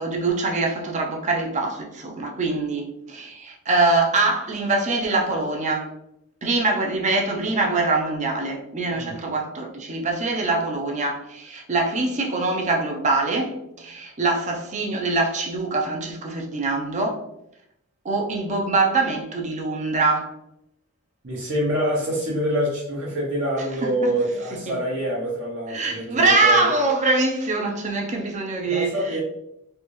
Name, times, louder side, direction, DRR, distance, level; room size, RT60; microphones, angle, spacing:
voice 1, 0.0-5.9 6.4-17.2 18.0-20.3 23.8-24.1 24.7-24.8 25.7-29.2, right 3 dB, 30° right, 0.6 m, -23 dB
voice 2, 21.2-26.9 28.7-29.2, right 1 dB, 55° right, 0.9 m, -26 dB
3.3 x 2.6 x 3.0 m
head